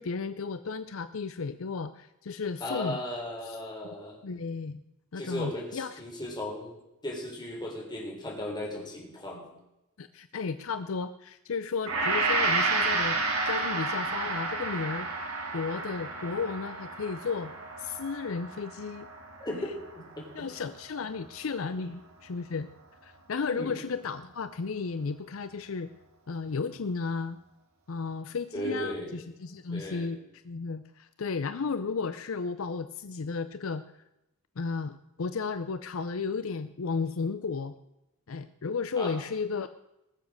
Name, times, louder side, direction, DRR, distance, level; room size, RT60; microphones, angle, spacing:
voice 1, 0.0-3.0 4.2-4.8 5.1-6.0 10.0-15.1 15.5-17.5 17.8-19.1 20.3-22.7 23.0-25.9 26.3-27.4 27.9-30.2 30.4-33.8 34.6-37.8 38.3-39.7, left 5 dB, 65° left, 12 dB, 0.5 m, -34 dB
voice 2, 2.6-4.2 5.2-6.7 7.0-9.4 19.4-20.5 23.4-23.8 28.5-29.1 29.7-30.1 39.0-39.2, left 1 dB, 20° left, -1 dB, 3.7 m, -36 dB
Gong, 11.9-20.3 20.6-20.8, right 3 dB, 85° right, 2.7 m, -31 dB
19.5 x 7.3 x 6.3 m, 0.90 s
head